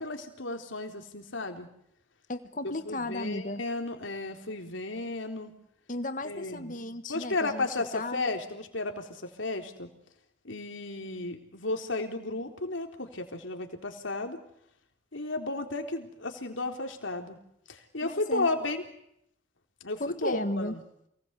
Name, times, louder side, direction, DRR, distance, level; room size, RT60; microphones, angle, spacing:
voice 1, 0.0-1.7 2.6-5.5 6.2-6.7 7.1-9.9 10.4-14.4 15.1-17.4 17.7-18.8 19.8-20.8, left 2 dB, 85° left, 5 dB, 3.9 m, -33 dB
voice 2, 2.3-3.6 5.9-7.7 7.9-8.2 18.0-18.5 20.0-20.8, left 1 dB, 40° left, 9 dB, 1.5 m, -34 dB
28.5 x 20.0 x 8.3 m, 0.74 s
head